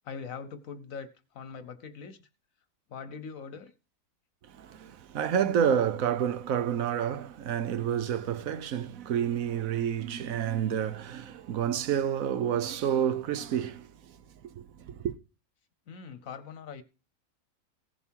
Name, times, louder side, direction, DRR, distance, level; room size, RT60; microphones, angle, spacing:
voice 1, 0.0-2.2 2.9-3.7 15.9-16.8, left 6 dB, 65° left, 1.2 m, -42 dB
voice 2, 4.4-14.2 14.5-15.2, right 9 dB, 70° right, 1.1 m, -29 dB
16.5 x 7.0 x 4.5 m
omnidirectional pair, 1.6 m